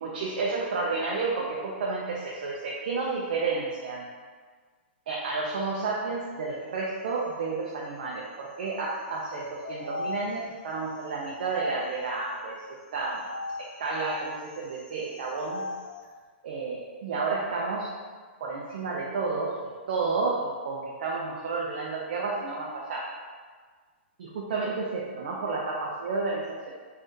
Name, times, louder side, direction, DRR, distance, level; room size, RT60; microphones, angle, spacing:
voice 1, 0.0-4.1 5.1-12.6 12.9-13.2 13.6-15.6 16.4-17.9 18.4-23.1 24.2-26.7, right 3 dB, 50° right, -4 dB, 0.4 m, -31 dB
sound 1, 9.3-12.7 13.2-16.1, left 3 dB, 45° left, 0.3 m, -40 dB
2.6 x 2.3 x 3.5 m, 1.5 s
hypercardioid pair, 175°, 6 cm